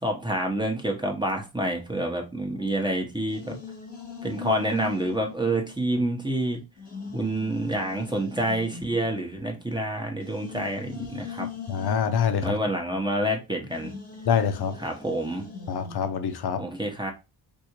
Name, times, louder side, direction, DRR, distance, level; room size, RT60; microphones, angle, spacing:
voice 1, 0.0-3.6 4.2-6.6 7.1-11.5 12.4-13.9 14.8-15.5 16.6-17.1, right 1 dB, 10° right, 0.9 m, -28 dB
sound 1, 3.3-6.3 6.7-13.3 13.7-16.4, left 6 dB, 15° left, 1.1 m, -42 dB
voice 2, 11.7-12.5 14.3-14.7 15.7-16.6, left 7 dB, 50° left, 0.7 m, -25 dB
3.4 x 2.7 x 2.9 m
cardioid pair, 75°, 49 cm